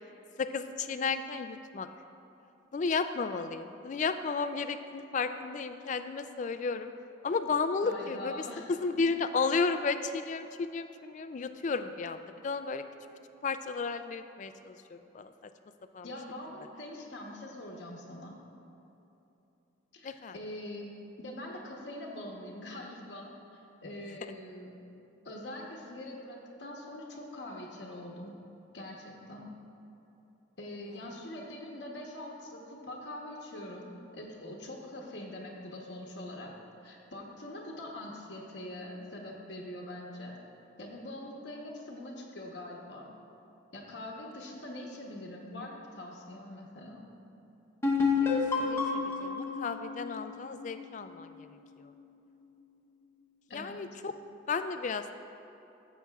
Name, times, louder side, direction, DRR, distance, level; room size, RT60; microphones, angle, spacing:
voice 1, 0.4-1.9 2.7-6.9 7.2-12.8 13.4-15.3 15.9-16.1 20.0-20.3 48.0-48.3 48.6-51.5 51.8-51.9 53.5-54.1 54.5-55.1, left 4 dB, 40° left, 10 dB, 0.3 m, -33 dB
voice 2, 7.8-8.7 16.0-18.4 19.9-24.8 25.2-28.4 28.7-29.5 30.6-36.5 36.8-40.4 40.8-43.1 43.7-47.0 53.5-53.8, left 1 dB, 60° left, -1 dB, 0.9 m, -43 dB
sound 1, 47.8-51.4, left 5 dB, 15° left, 0.8 m, -30 dB
15.0 x 7.2 x 2.3 m, 2.9 s
head